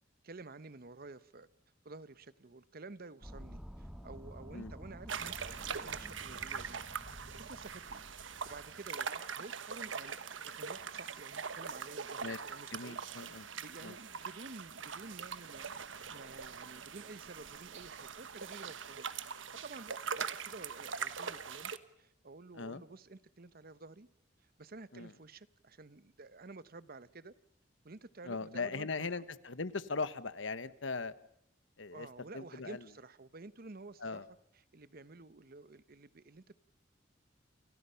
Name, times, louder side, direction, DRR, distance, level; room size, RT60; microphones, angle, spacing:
voice 1, 0.2-1.5 1.8-6.9 7.4-8.0 8.4-19.1 19.6-21.7 22.0-24.1 24.4-27.3 27.8-29.2 31.9-34.2 34.5-36.6, right 3 dB, 50° right, 0.9 m, -51 dB
sound 1, 3.2-9.0, equal, 5° right, 1.8 m, -51 dB
sound 2, 5.1-21.8, right 6 dB, 85° right, 1.3 m, -42 dB
voice 2, 12.7-13.5 13.8-14.0 22.5-22.8 24.9-25.1 28.2-31.1 31.8-32.1 32.3-32.8 34.0-34.2, left 4 dB, 85° left, 1.2 m, -39 dB
29.5 x 28.0 x 5.7 m
head